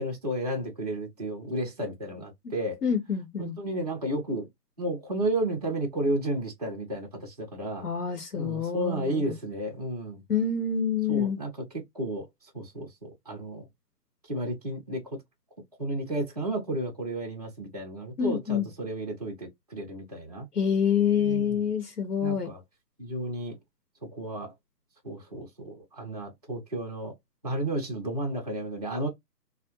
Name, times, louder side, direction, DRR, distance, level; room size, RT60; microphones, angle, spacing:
voice 1, 0.0-2.8 3.4-4.5 4.8-7.9 8.3-10.2 11.1-11.6 11.9-12.3 12.5-13.7 14.3-15.0 15.8-20.5 21.2-21.7 22.2-22.6 23.0-23.5 24.1-24.5 25.0-27.1 27.4-29.1, right 1 dB, 25° right, 0.6 m, -32 dB
voice 2, 2.8-3.5 7.8-9.3 10.3-11.4 18.2-18.7 20.5-22.5, left 7 dB, 65° left, 0.9 m, -27 dB
2.3 x 2.0 x 2.9 m
hypercardioid pair, 160°, 49 cm